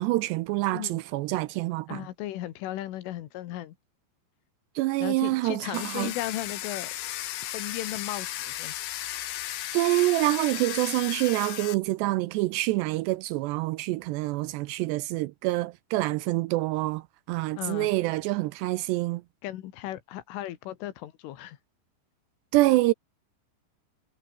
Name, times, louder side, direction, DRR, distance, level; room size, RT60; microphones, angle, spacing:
voice 1, 0.0-2.0 4.8-6.1 9.7-19.2 22.5-22.9, right 19 dB, 85° right, 2.4 m, -26 dB
voice 2, 1.9-3.8 5.0-6.9 7.5-8.8 17.6-17.9 19.4-21.6, left 14 dB, 85° left, 4.1 m, -36 dB
Domestic sounds home sounds, 5.7-11.8, left 13 dB, 70° left, 3.5 m, -35 dB
omnidirectional pair, 5.6 m